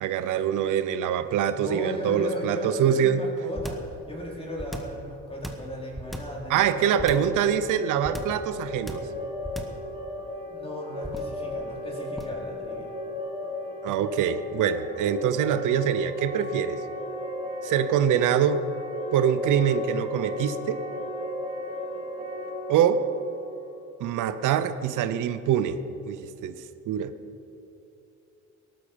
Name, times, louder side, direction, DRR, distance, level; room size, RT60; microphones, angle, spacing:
voice 1, 0.0-3.2 6.5-9.0 13.8-16.8 17.6-18.6 19.1-20.8 22.7-23.0 24.0-25.8 26.1-26.5 26.9-27.1, right 9 dB, 85° right, 11 dB, 0.8 m, -24 dB
voice 2, 1.5-3.8 4.1-7.3 10.5-12.9, equal, 20° left, -3 dB, 4.5 m, -36 dB
sound 1, 3.5-3.9 4.6-5.0 5.4-6.4 7.0-7.4 8.0-8.4 8.9-9.2 9.4-9.8 11.0-11.4 12.2-12.4, equal, ahead, 1.7 m, -36 dB
sound 2, 6.7-24.5, left 1 dB, 20° right, 3.9 m, -35 dB
18.0 x 12.5 x 5.2 m, 2.8 s
cardioid pair, 90°, 30 cm